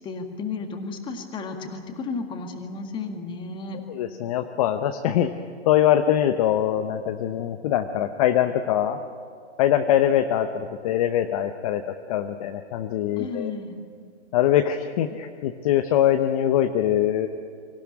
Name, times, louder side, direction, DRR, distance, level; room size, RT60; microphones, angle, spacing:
voice 1, 0.0-3.8 13.2-13.8, left 4 dB, 15° left, 4 dB, 1.9 m, -33 dB
voice 2, 3.9-5.3 5.7-9.0 9.6-13.5 14.3-17.3, left 11 dB, 30° left, 8 dB, 0.9 m, -23 dB
24.5 x 15.5 x 9.7 m, 2.2 s
hypercardioid pair, 140°, 34 cm